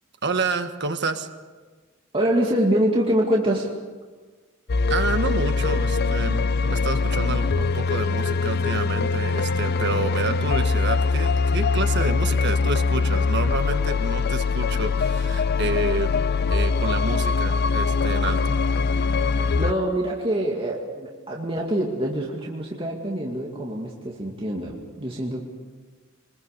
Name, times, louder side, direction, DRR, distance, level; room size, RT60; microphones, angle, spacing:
voice 1, 0.2-1.3 4.9-16.1 16.5-18.5, right 3 dB, 60° right, 7 dB, 1.5 m, -29 dB
voice 2, 2.1-3.7 19.6-25.4, right 1 dB, 25° right, -2 dB, 2.3 m, -25 dB
sound 1, 4.7-19.7, left 4 dB, 50° left, 0.6 m, -22 dB
24.0 x 21.5 x 6.7 m, 1.4 s
head